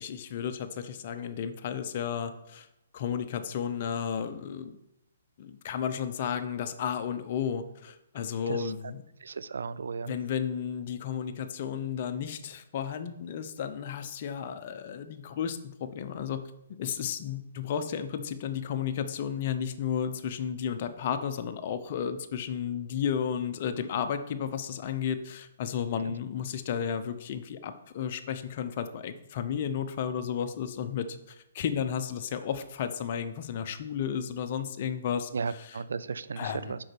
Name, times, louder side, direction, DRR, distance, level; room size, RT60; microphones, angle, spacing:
voice 1, 0.0-2.7 2.9-4.8 5.4-9.0 10.0-16.4 16.8-35.8 36.4-36.8, left 8 dB, 45° left, 9 dB, 0.8 m, -33 dB
voice 2, 9.2-10.1 35.3-36.8, right 5 dB, 75° right, 16 dB, 0.4 m, -34 dB
6.4 x 5.5 x 6.0 m, 0.84 s
hypercardioid pair, 140°, 0 cm